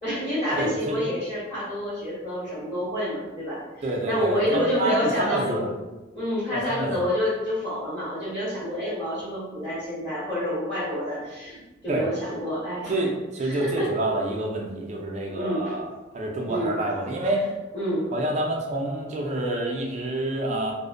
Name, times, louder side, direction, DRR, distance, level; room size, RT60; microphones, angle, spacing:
voice 1, 0.0-5.8 6.1-13.1 13.4-13.9 15.3-15.7 16.5-16.7 17.2-17.5 17.7-18.1, equal, 25° left, -12 dB, 1.0 m, -28 dB
voice 2, 0.6-1.0 3.8-5.6 6.5-7.1 11.9-12.1 12.9-15.8 16.1-17.4 18.1-20.7, right 1 dB, 35° right, 0 dB, 0.4 m, -28 dB
2.5 x 2.1 x 2.5 m, 1.1 s
head